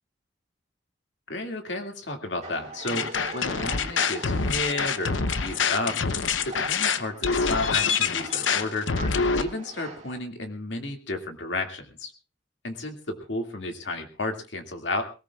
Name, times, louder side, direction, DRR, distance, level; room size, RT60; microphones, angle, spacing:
voice 1, 1.3-5.1 5.4-6.0 6.4-8.9 9.1-12.1 12.6-15.0, left 2 dB, 70° left, 4 dB, 2.3 m, -32 dB
sound 1, 2.4-10.2, right 3 dB, 40° right, 2.7 m, -42 dB
sound 2, 2.9-9.4, left 5 dB, 90° left, 0.8 m, -25 dB
21.0 x 18.5 x 2.4 m, 0.32 s
head